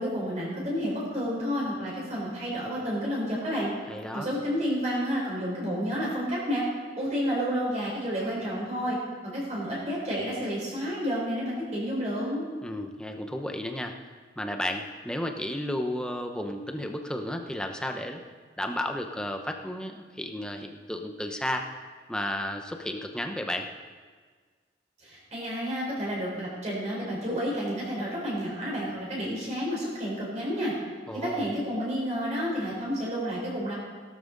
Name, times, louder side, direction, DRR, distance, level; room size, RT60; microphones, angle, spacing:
voice 1, 0.0-3.7 4.1-6.7 7.0-9.0 9.2-12.4 25.0-30.7 31.1-33.7, equal, 40° right, -5 dB, 4.3 m, -30 dB
voice 2, 3.9-4.3 12.6-13.9 14.4-18.2 18.6-21.7 22.1-23.7 31.1-31.5, left 1 dB, 5° left, 4 dB, 0.8 m, -33 dB
17.0 x 12.5 x 4.0 m, 1.5 s
head